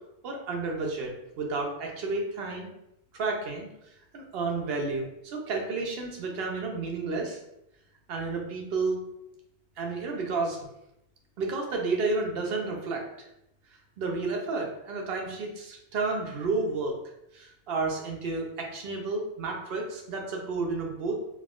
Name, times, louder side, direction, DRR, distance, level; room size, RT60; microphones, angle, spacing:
voice 1, 0.2-2.7 3.1-3.7 4.1-7.4 8.1-9.0 9.8-10.7 11.4-13.0 14.0-16.9 17.3-21.2, right 3 dB, 70° right, 1 dB, 0.8 m, -31 dB
3.3 x 2.1 x 2.4 m, 0.83 s
omnidirectional pair, 1.1 m